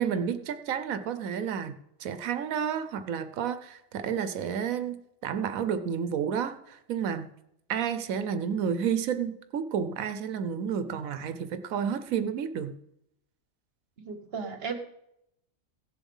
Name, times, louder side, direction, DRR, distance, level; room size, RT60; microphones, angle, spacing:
voice 1, 0.0-1.7 2.0-7.3 7.7-12.8, right 7 dB, 90° right, 11 dB, 1.2 m, -31 dB
voice 2, 14.0-14.8, right 5 dB, 50° right, 8 dB, 1.5 m, -35 dB
16.5 x 7.1 x 5.4 m, 0.79 s
omnidirectional pair, 1.4 m